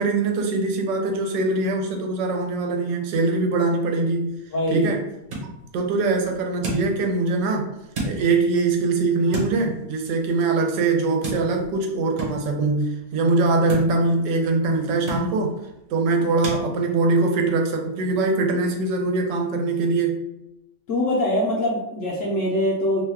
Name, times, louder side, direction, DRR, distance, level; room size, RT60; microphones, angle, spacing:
voice 1, 0.0-4.4 4.7-5.0 5.4-5.5 5.7-7.7 8.0-15.6 15.9-20.2, right 3 dB, 85° right, 3 dB, 1.2 m, -22 dB
sound 1, 4.1-16.6, right 2 dB, 55° right, 1.2 m, -36 dB
voice 2, 4.5-4.9 20.9-23.0, left 1 dB, 65° left, -4 dB, 0.8 m, -23 dB
3.0 x 2.3 x 3.3 m, 0.89 s
omnidirectional pair, 1.9 m